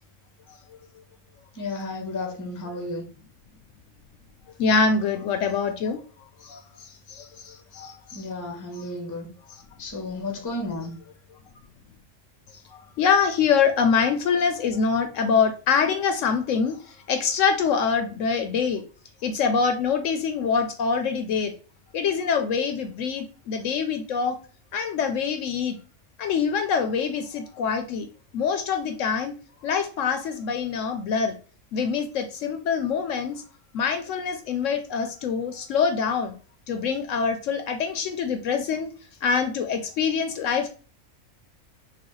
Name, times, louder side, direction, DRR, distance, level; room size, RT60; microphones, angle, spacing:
voice 1, 1.6-3.0 8.1-9.3 9.8-11.0, left 2 dB, 20° left, 0.5 m, -33 dB
voice 2, 4.6-6.0 6.4-8.2 8.8-8.9 12.7-18.8 19.2-21.5 21.9-24.4 24.7-25.8 26.2-28.1 28.3-29.3 29.6-31.3 31.7-33.4 33.7-36.3 36.7-38.9 39.2-40.7, left 6 dB, 70° left, 0.9 m, -25 dB
5.7 x 2.4 x 3.1 m
omnidirectional pair, 1.5 m